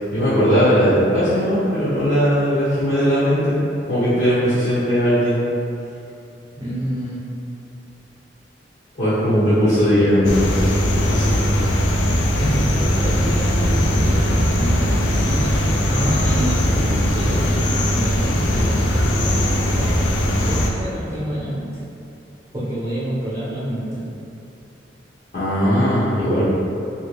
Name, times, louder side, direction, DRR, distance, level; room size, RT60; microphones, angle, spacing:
voice 1, 0.1-3.6 3.9-5.4 9.0-10.6 11.1-11.4 25.3-26.4, equal, 50° left, -15 dB, 0.8 m, -18 dB
voice 2, 6.6-7.3 9.7-10.3 12.4-21.8 22.5-24.1, equal, 20° right, -10 dB, 0.8 m, -27 dB
sound 1, 10.2-20.7, equal, 80° left, 0.4 m, -19 dB
2.9 x 2.8 x 3.1 m, 2.7 s
head